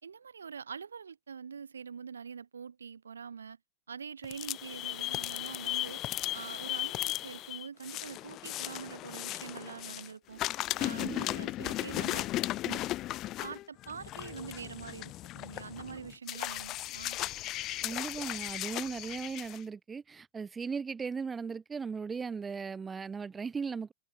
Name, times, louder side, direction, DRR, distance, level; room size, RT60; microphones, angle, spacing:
voice 1, 0.0-3.6 3.9-6.0 6.3-10.4 10.8-12.3 12.6-12.8 13.4-17.2, right 6 dB, 70° right, 5.1 m, -44 dB
sound 1, 4.2-10.1 10.4-19.6, left 16 dB, 35° left, 2.4 m, -36 dB
voice 2, 17.8-23.9, right 5 dB, 15° right, 1.1 m, -37 dB
figure-of-eight pair, 90°, 0 cm